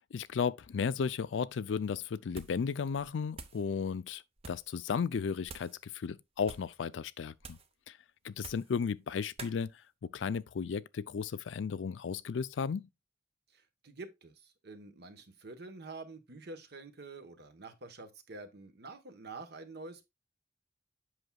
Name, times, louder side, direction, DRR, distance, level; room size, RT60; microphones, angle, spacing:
voice 1, 0.1-4.2 4.5-7.6 7.9-8.0 8.2-9.7 10.0-12.9, left 6 dB, 80° left, 0.4 m, -34 dB
sound 1, 2.3-2.7 3.0-3.7 4.4-4.7 5.4-5.8 6.4-6.8 7.4-7.7 8.4-8.8 9.4-9.6, right 4 dB, 35° right, 0.7 m, -48 dB
voice 2, 13.5-20.0, right 3 dB, 60° right, 1.0 m, -47 dB
7.9 x 5.8 x 2.3 m
head